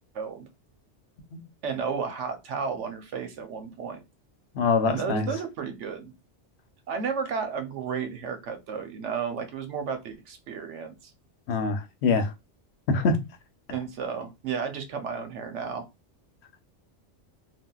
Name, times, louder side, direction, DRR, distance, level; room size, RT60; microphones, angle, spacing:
voice 1, 0.1-0.5 1.6-4.0 4.9-6.1 6.9-11.1 13.7-15.9, right 6 dB, 80° right, 1.0 m, -33 dB
voice 2, 4.5-5.3 11.5-12.3 12.9-13.2, left 4 dB, 70° left, 0.9 m, -24 dB
3.5 x 2.2 x 2.2 m
omnidirectional pair, 1.2 m